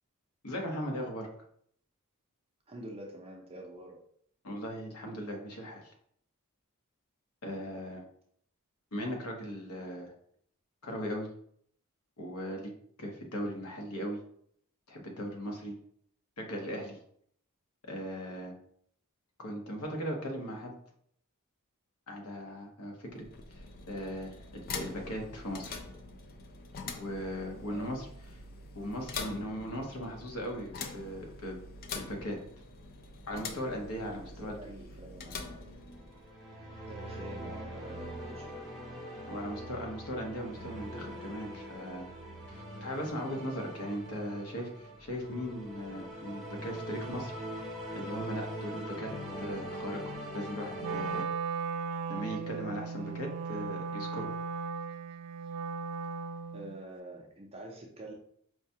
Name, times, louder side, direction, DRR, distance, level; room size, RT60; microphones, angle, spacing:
voice 1, 0.4-1.3 4.4-5.9 7.4-8.0 8.9-10.1 10.8-11.3 12.2-12.7 13.0-14.2 14.9-15.8 16.4-17.0 17.8-18.5 19.4-20.7 22.1-23.3 23.5-25.8 26.8-28.1 28.7-31.6 31.9-32.4 33.3-34.5 39.3-42.1 42.5-47.6 47.9-49.1 49.4-51.2 52.1-54.3, equal, 80° left, 1 dB, 0.9 m, -38 dB
voice 2, 2.7-4.0 27.6-27.9 30.7-30.9 34.2-36.2 36.9-38.8 56.5-58.1, right 1 dB, 25° right, 0 dB, 0.5 m, -47 dB
sound 1, 23.1-36.4, left 4 dB, 45° left, 0.4 m, -44 dB
sound 2, 35.8-51.2, equal, ahead, 0.8 m, -42 dB
Wind instrument woodwind instrument, 50.8-56.8, right 5 dB, 85° right, 0.3 m, -37 dB
4.8 x 2.2 x 2.7 m, 0.66 s
head